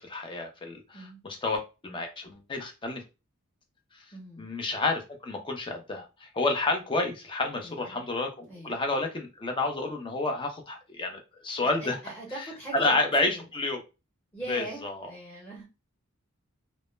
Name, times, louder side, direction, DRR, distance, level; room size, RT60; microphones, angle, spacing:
voice 1, 0.0-3.0 3.9-4.0 4.4-12.0 12.4-12.5 12.7-13.8 14.5-15.1, left 2 dB, 25° left, 0.5 m, -30 dB
voice 2, 4.1-4.5 7.6-8.0 8.4-8.8 11.8-13.4 14.3-15.6, right 1 dB, 10° left, 0.9 m, -41 dB
2.1 x 2.0 x 3.0 m
head